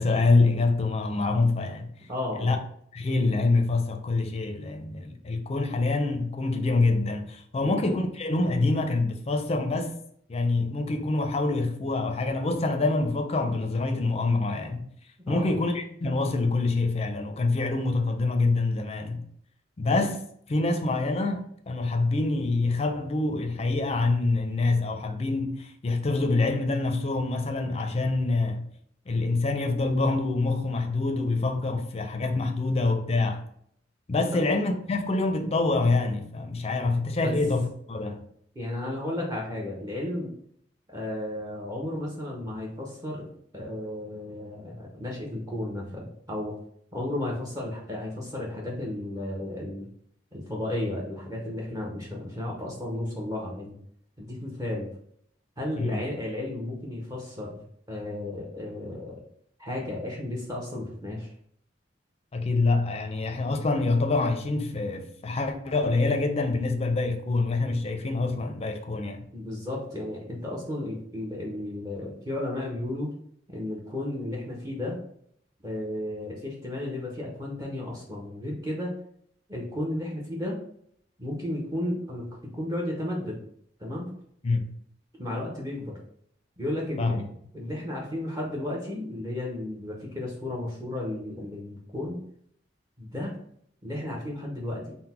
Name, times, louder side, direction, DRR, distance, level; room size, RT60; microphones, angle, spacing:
voice 1, 0.0-1.9 2.4-2.6 2.9-9.9 10.3-14.9 15.3-19.2 19.8-28.7 29.1-33.4 34.1-38.3 55.8-56.0 62.3-69.2 84.4-84.7 87.0-87.2, left 3 dB, 35° left, 0.5 m, -26 dB
voice 2, 2.1-2.5 7.6-7.8 15.3-15.5 34.3-34.4 37.2-37.3 38.5-40.3 40.9-43.3 43.5-46.5 46.9-49.9 50.3-53.8 54.2-54.9 55.6-59.2 59.6-61.3 69.3-73.1 73.5-75.0 75.6-78.9 79.5-80.6 81.2-83.4 83.8-84.1 85.2-86.0 86.6-87.2 87.5-92.2 93.0-93.3 93.8-95.0, left 1 dB, 20° right, 0.7 m, -33 dB
3.9 x 2.1 x 4.2 m
head